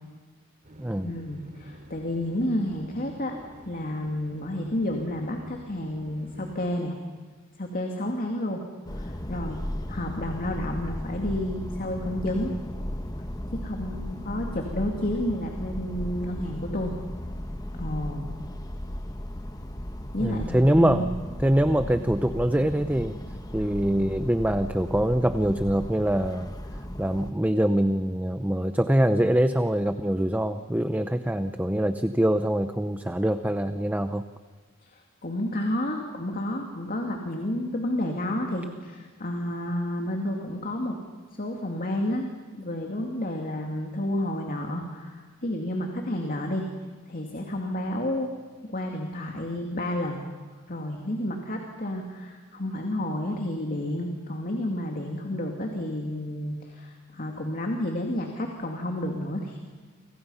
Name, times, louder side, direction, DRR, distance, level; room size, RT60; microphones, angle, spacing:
sound 1, 0.6-6.8, right 1 dB, 40° right, 3.0 m, -48 dB
voice 1, 1.0-3.4 3.6-7.0 7.6-8.6 9.0-9.6 9.9-12.5 13.5-16.9 17.7-18.3 20.1-21.0 35.2-41.0 41.4-46.7 47.1-48.3 48.7-50.3 50.7-59.6, left 1 dB, 45° left, 2 dB, 2.4 m, -30 dB
sound 2, 8.9-27.3, left 1 dB, 20° left, 1.2 m, -36 dB
voice 2, 20.2-21.1 21.4-23.2 23.5-26.5 27.0-34.3, right 1 dB, 10° right, 9 dB, 0.7 m, -24 dB
29.5 x 25.5 x 5.6 m, 1.5 s
head